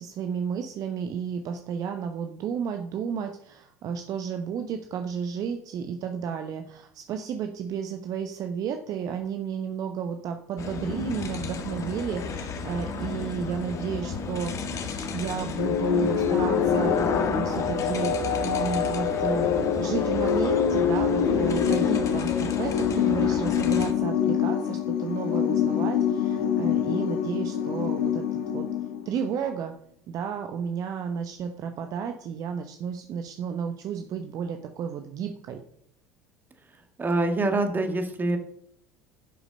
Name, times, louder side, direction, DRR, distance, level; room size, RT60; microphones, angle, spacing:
voice 1, 0.0-14.5 15.1-28.6 29.0-29.7 30.1-35.6, right 7 dB, 45° right, 6 dB, 0.9 m, -32 dB
sound 1, 10.6-23.9, left 4 dB, 40° left, 1.5 m, -32 dB
sound 2, 15.6-29.3, left 8 dB, 65° left, 1.2 m, -25 dB
voice 2, 37.0-38.4, right 2 dB, 25° right, 6 dB, 1.8 m, -25 dB
11.0 x 5.9 x 5.3 m, 0.69 s
figure-of-eight pair, 70°, 8 cm